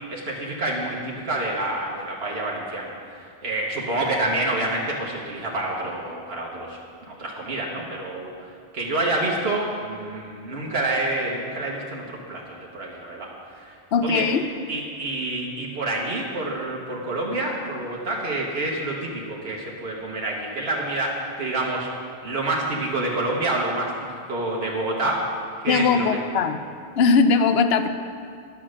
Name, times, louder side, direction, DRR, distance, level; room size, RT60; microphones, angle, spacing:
voice 1, 0.1-6.8 7.1-8.3 8.7-13.7 14.0-14.2 14.7-21.9 22.2-25.4 25.6-26.2, right 2 dB, 80° right, -3 dB, 1.5 m, -28 dB
voice 2, 13.9-14.4 25.7-26.6 27.0-27.9, left 5 dB, 80° left, 9 dB, 0.9 m, -19 dB
10.5 x 7.0 x 6.4 m, 2.3 s
omnidirectional pair, 1.0 m